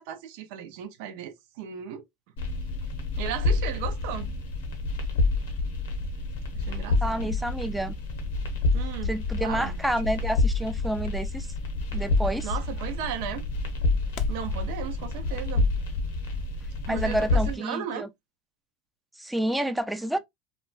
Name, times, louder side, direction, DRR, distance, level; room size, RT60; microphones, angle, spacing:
voice 1, 0.0-2.0 3.2-4.3 6.5-7.4 8.7-9.1 9.4-9.8 12.4-13.5 14.3-15.7 16.9-18.1, right 9 dB, 70° right, 0.5 m, -36 dB
sound 1, 2.4-17.6, left 3 dB, 80° left, 0.9 m, -28 dB
voice 2, 7.0-8.0 9.0-11.5 11.9-12.5 16.9-18.1 19.2-20.2, right 1 dB, 5° right, 0.5 m, -29 dB
sound 2, 8.3-14.5, left 5 dB, 55° left, 0.5 m, -42 dB
2.9 x 2.2 x 2.4 m
hypercardioid pair, 95°, 0 cm